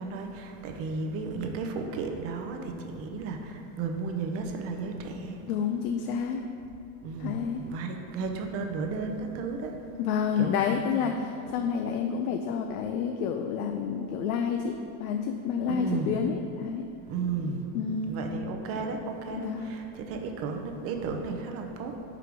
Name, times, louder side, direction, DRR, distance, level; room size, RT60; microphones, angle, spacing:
voice 1, 0.0-5.4 7.0-9.8 10.4-10.7 15.7-16.2 17.1-17.6 18.1-22.0, right 4 dB, 35° right, 4 dB, 0.5 m, -34 dB
voice 2, 5.5-6.5 7.2-7.6 10.0-16.8 17.7-18.2 19.4-19.7, left 7 dB, 80° left, 4 dB, 0.5 m, -29 dB
4.8 x 4.5 x 5.1 m, 2.6 s
supercardioid pair, 145°, 45 cm